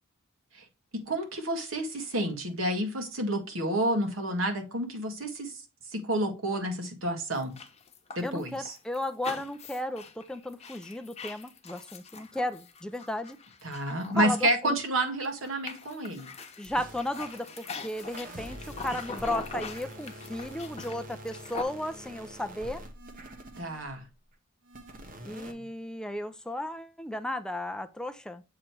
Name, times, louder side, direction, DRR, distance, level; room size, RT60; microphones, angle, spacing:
voice 1, 0.9-5.6 5.9-7.6 8.1-8.8 13.6-16.3 23.6-24.0 25.5-25.6, right 1 dB, 85° right, 1.6 m, -30 dB
sound 1, 7.3-14.9 15.2-21.6, left 4 dB, 35° left, 0.9 m, -43 dB
voice 2, 8.2-13.4 14.1-14.8 16.6-22.8 25.2-28.4, left 1 dB, 5° left, 0.4 m, -34 dB
sound 2, 16.7-24.1 24.6-25.5, right 1 dB, 45° right, 1.0 m, -45 dB
7.5 x 3.0 x 4.4 m
head